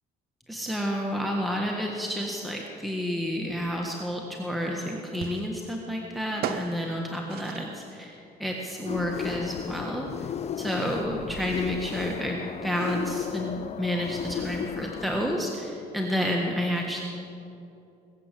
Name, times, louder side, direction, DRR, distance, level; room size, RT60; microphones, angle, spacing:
voice 1, 0.5-10.3 10.6-17.0, equal, ahead, -1 dB, 1.5 m, -30 dB
sound 1, 4.2-13.2, right 8 dB, 65° right, 0.8 m, -42 dB
sound 2, 8.9-15.4, left 8 dB, 40° left, 0.6 m, -34 dB
20.5 x 8.2 x 7.6 m, 2.7 s
cardioid pair, 110°, 17 cm